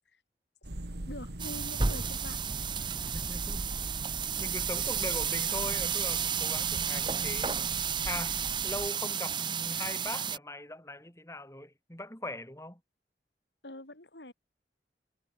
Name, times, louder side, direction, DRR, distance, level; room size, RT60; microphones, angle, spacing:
sound 1, 0.6-8.9, right 1 dB, 70° right, 1.9 m, -41 dB
voice 1, 1.0-2.4 13.6-14.3, left 1 dB, 85° left, 6.6 m, -44 dB
sound 2, 1.4-10.4, right 7 dB, 25° right, 1.1 m, -32 dB
voice 2, 3.1-3.7 4.4-8.4 8.6-12.8, left 1 dB, 15° left, 6.2 m, -40 dB
head